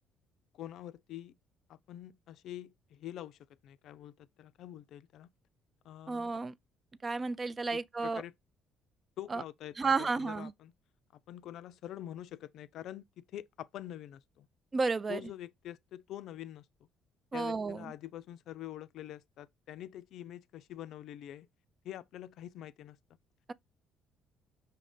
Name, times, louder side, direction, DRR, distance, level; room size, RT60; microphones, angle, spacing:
voice 1, 0.5-1.4 1.7-5.3 5.8-6.4 7.7-8.3 9.2-10.7 11.3-14.5 15.1-16.7 17.3-21.5 21.8-23.0, left 12 dB, 70° left, 0.4 m, -46 dB
voice 2, 6.1-6.5 7.0-8.2 9.3-9.4 9.8-10.5 14.7-15.2 17.3-17.9, right 4 dB, 35° right, 0.4 m, -32 dB
5.7 x 2.5 x 3.6 m
hypercardioid pair, 60°, 0 cm